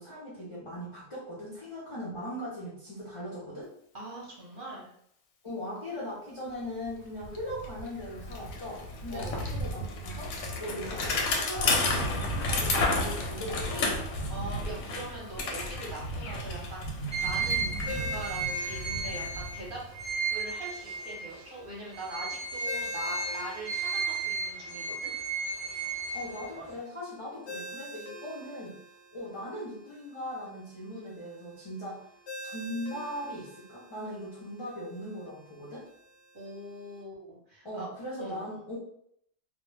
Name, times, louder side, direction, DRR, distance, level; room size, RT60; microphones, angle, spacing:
voice 1, 0.0-3.7 5.4-10.3 10.6-14.0 26.1-28.8 29.1-32.0 32.4-35.8 37.6-38.8, equal, 45° left, -7 dB, 0.4 m, -39 dB
voice 2, 3.9-4.9 9.1-9.4 14.3-19.8 20.3-25.1 36.3-37.9 38.2-38.6, right 1 dB, 50° right, -5 dB, 0.7 m, -42 dB
Bicycle, 6.9-7.0 7.2-20.1, left 2 dB, 85° left, 1.0 m, -32 dB
sound 1, 17.1-21.5 21.9-26.8, right 4 dB, 5° right, 0.9 m, -34 dB
Ringtone, 17.9-37.0, equal, 60° left, 0.8 m, -48 dB
2.2 x 2.1 x 3.1 m, 0.69 s
omnidirectional pair, 1.4 m